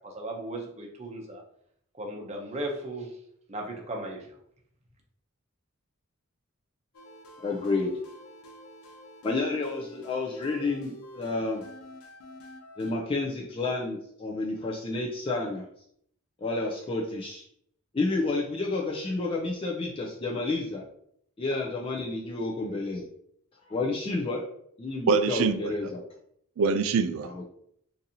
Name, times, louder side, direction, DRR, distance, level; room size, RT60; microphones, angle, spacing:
voice 1, 0.0-1.4 2.0-3.1 3.5-4.3, right 1 dB, 30° right, 0 dB, 0.7 m, -36 dB
sound 1, 6.9-12.9, left 1 dB, 90° left, 0.6 m, -48 dB
voice 2, 7.4-7.9 9.2-11.6 12.8-15.6 16.4-17.4 17.9-20.8 21.4-23.0 23.7-24.4 24.8-26.0 27.2-27.4, left 3 dB, 25° left, -2 dB, 0.4 m, -30 dB
voice 3, 25.1-25.8 26.6-27.4, right 5 dB, 70° right, 11 dB, 0.3 m, -25 dB
3.9 x 2.6 x 2.7 m, 0.68 s
head